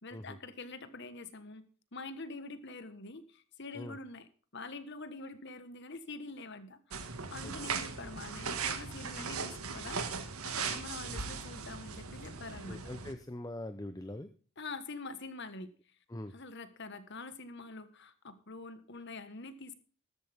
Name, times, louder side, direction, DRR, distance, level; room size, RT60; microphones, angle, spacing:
voice 1, 0.0-1.6 1.9-4.3 4.5-12.9 14.6-15.7 16.3-19.8, left 3 dB, 50° left, 11 dB, 1.4 m, -45 dB
sound 1, 6.9-13.1, right 5 dB, 80° right, 1.8 m, -38 dB
voice 2, 12.7-14.3 16.1-16.3, left 1 dB, 15° left, 9 dB, 0.6 m, -43 dB
13.5 x 12.5 x 3.6 m, 0.39 s
head